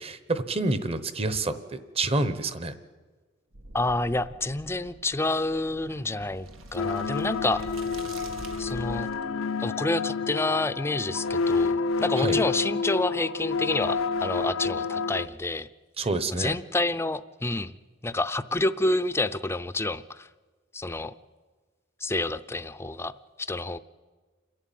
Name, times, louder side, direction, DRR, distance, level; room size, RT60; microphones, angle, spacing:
voice 1, 0.0-2.7 12.2-12.4 16.0-16.6, right 2 dB, 30° right, 12 dB, 1.0 m, -28 dB
sound 1, 3.5-9.2, right 2 dB, 85° right, 1.7 m, -45 dB
voice 2, 3.7-6.5 6.7-7.6 8.6-9.1 9.6-15.7 16.3-17.7 18.0-20.3 20.7-21.1 22.0-23.1 23.4-23.8, left 2 dB, 15° left, 14 dB, 0.5 m, -28 dB
sound 2, 6.8-15.3, left 4 dB, 90° left, 0.7 m, -29 dB
28.5 x 11.5 x 9.2 m, 1.4 s
head